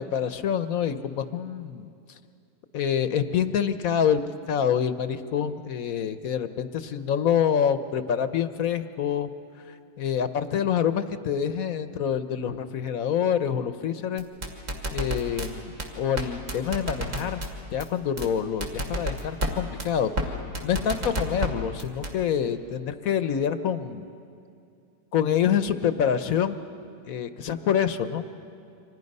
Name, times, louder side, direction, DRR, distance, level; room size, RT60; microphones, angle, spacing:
voice 1, 0.0-1.9 2.7-4.2 4.5-9.3 10.0-14.2 14.9-17.4 17.7-20.4 20.6-24.0 25.1-26.6 27.1-28.2, left 8 dB, 60° left, 11 dB, 1.0 m, -26 dB
sound 1, 14.2-15.5 15.8-15.9 16.2-16.3 16.5-17.5 17.8-17.9 18.2-18.3 18.6-19.5 19.8-19.9 20.2-20.3 20.5-21.5 21.8-22.1, right 1 dB, 55° right, 3.1 m, -28 dB
29.5 x 25.5 x 5.4 m, 2.4 s
omnidirectional pair, 2.0 m